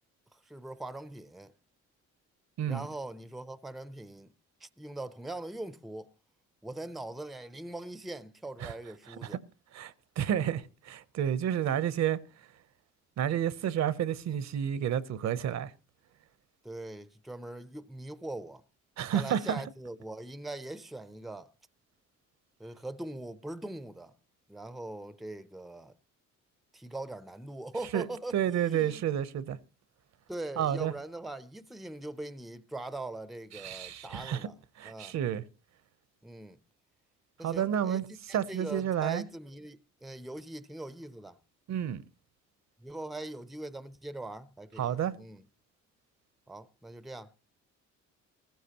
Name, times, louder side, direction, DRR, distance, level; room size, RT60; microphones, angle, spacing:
voice 1, 0.5-1.5 2.6-4.3 4.6-6.1 6.6-9.4 16.6-18.6 19.1-21.5 22.6-24.1 24.5-25.9 26.7-29.0 30.3-34.6 34.8-35.1 36.2-36.6 37.4-38.0 38.3-41.4 42.8-45.4 46.5-47.3, right 2 dB, ahead, 0.5 m, -41 dB
voice 2, 9.1-9.4 9.7-12.2 13.2-15.7 19.0-19.6 27.9-28.1 28.3-29.6 30.6-30.9 33.5-34.5 34.8-35.4 37.4-39.2 41.7-42.0 44.8-45.1, right 9 dB, 65° right, 0.7 m, -30 dB
15.5 x 15.0 x 2.9 m
cardioid pair, 90°, 30 cm